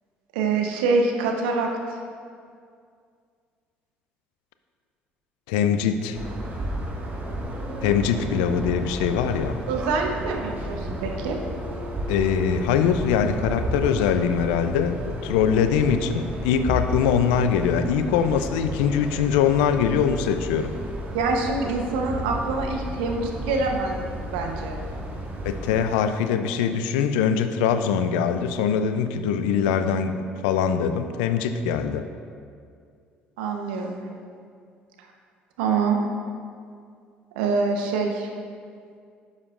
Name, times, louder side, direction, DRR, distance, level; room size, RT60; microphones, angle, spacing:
voice 1, 0.3-1.7 9.7-11.4 21.1-24.0 24.3-24.8 33.4-34.0 35.6-36.0 37.4-38.3, right 4 dB, 80° right, 2 dB, 0.9 m, -25 dB
voice 2, 5.5-6.2 7.8-9.6 12.1-20.7 25.4-32.1, left 7 dB, 80° left, 9 dB, 0.4 m, -23 dB
sound 1, 6.1-25.8, right 1 dB, 40° right, 1.7 m, -32 dB
11.0 x 7.5 x 2.5 m, 2.2 s
hypercardioid pair, 60°, 5 cm